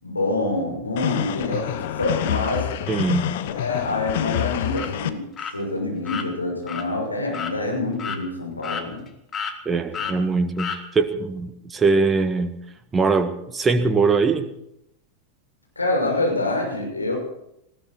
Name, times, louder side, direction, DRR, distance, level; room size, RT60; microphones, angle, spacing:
voice 1, 0.0-2.7 3.4-5.3 5.5-9.0 10.0-10.3 15.8-17.2, left 2 dB, 80° left, -1 dB, 6.3 m, -26 dB
sound 1, 1.0-5.1, left 12 dB, 50° left, 1.1 m, -27 dB
voice 2, 2.9-3.3 9.7-12.6 12.9-14.5, right 4 dB, 15° right, 8 dB, 1.6 m, -21 dB
sound 2, 4.7-4.9 5.4-5.5 6.0-6.3 6.7-6.8 7.3-7.6 8.0-8.2 8.6-9.1 9.3-9.6 9.9-10.2 10.6-10.8, left 6 dB, 25° left, 1.8 m, -30 dB
19.5 x 16.0 x 4.4 m, 0.79 s
figure-of-eight pair, 90°, 0 cm